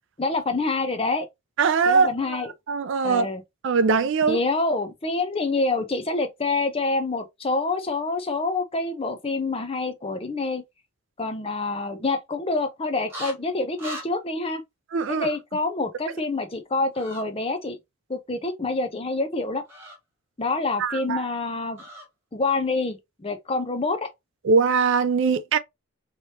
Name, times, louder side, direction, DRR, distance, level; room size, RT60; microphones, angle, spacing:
voice 1, 0.2-1.3 1.9-2.5 3.0-3.4 4.3-10.6 11.2-14.6 15.1-17.8 18.1-19.6 20.4-21.8 22.3-24.1, left 3 dB, 25° left, 0.6 m, -27 dB
voice 2, 1.6-2.4 2.7-3.3 3.6-4.4 14.9-15.3 20.8-21.3 24.4-25.6, right 5 dB, 55° right, 0.3 m, -21 dB
sound 1, 13.1-13.3 13.8-14.1 16.9-17.2 19.6-20.0 21.8-22.1, right 1 dB, 10° right, 1.6 m, -37 dB
3.2 x 2.9 x 2.9 m
head